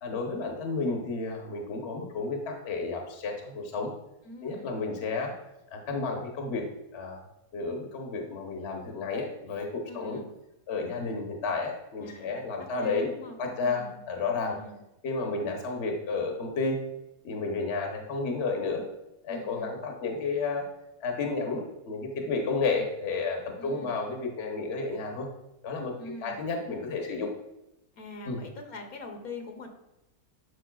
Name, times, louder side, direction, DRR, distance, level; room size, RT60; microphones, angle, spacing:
voice 1, 0.0-3.9 4.4-5.3 5.7-6.7 6.9-7.2 7.5-10.2 10.7-13.1 13.4-14.6 15.0-16.9 17.2-18.8 19.2-20.6 21.0-25.3 25.6-26.0 26.2-27.3 28.3-28.4, left 3 dB, 50° left, 2 dB, 1.1 m, -31 dB
voice 2, 4.2-4.8 9.9-10.3 12.0-14.0 14.5-14.8 19.3-19.8 23.6-23.9 26.0-26.7 28.0-29.7, left 2 dB, 70° left, 2 dB, 1.5 m, -44 dB
11.0 x 5.4 x 2.3 m, 0.91 s
omnidirectional pair, 1.6 m